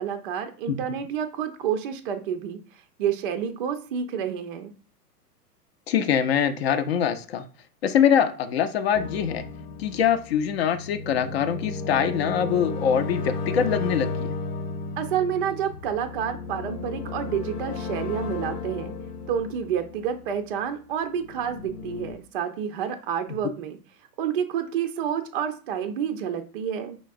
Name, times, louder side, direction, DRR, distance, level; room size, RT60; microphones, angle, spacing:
voice 1, 0.0-4.7 15.0-18.9 19.3-23.8 24.2-27.0, right 8 dB, 35° right, 7 dB, 0.5 m, -29 dB
voice 2, 5.9-7.4 7.8-9.4 9.8-14.4, left 8 dB, 40° left, 9 dB, 0.5 m, -23 dB
sound 1, 8.9-20.6 21.0-22.1, left 3 dB, 70° left, 0.9 m, -34 dB
5.0 x 3.6 x 2.5 m, 0.37 s
figure-of-eight pair, 110°, 49 cm